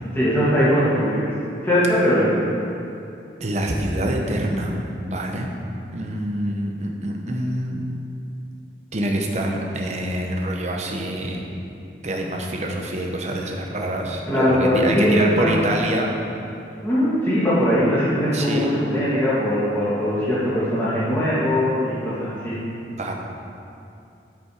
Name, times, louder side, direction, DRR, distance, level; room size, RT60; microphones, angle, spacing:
voice 1, 0.1-1.3 1.6-2.4 14.3-15.5 16.8-22.6, equal, 10° left, -10 dB, 2.3 m, -20 dB
voice 2, 3.4-4.8 5.0-5.6 5.9-7.8 8.9-11.4 12.0-16.1 18.3-18.7 23.0-23.1, right 1 dB, 40° right, 0 dB, 0.9 m, -25 dB
12.0 x 5.2 x 4.8 m, 2.7 s
head